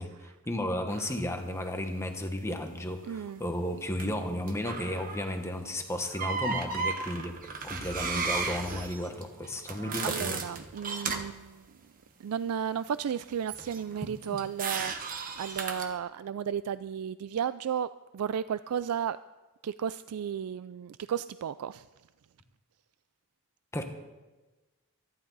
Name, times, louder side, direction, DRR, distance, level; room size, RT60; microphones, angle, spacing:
voice 1, 0.0-7.4 7.6-10.4 14.0-14.1 23.7-23.8, left 1 dB, 10° left, 5 dB, 1.2 m, -33 dB
sound 1, 0.9-1.2 4.0-4.1 4.5-5.4 6.0-11.4 13.5-15.9, right 4 dB, 40° right, 1.2 m, -35 dB
voice 2, 3.0-3.4 10.0-11.7 12.2-19.2 19.6-21.9, right 8 dB, 85° right, 15 dB, 0.4 m, -34 dB
24.0 x 11.5 x 4.0 m, 1.2 s
head